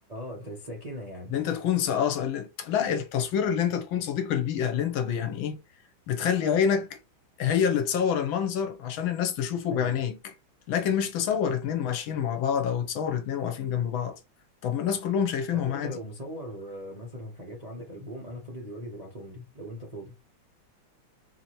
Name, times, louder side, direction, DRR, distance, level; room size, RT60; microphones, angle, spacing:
voice 1, 0.1-1.3 9.7-10.0 15.5-20.1, equal, 35° right, 0.6 m, -39 dB
voice 2, 1.3-5.6 6.1-7.0 7.4-10.3 10.7-14.2 14.6-16.0, left 8 dB, 75° left, 1.5 m, -27 dB
4.2 x 2.8 x 3.0 m
omnidirectional pair, 2.2 m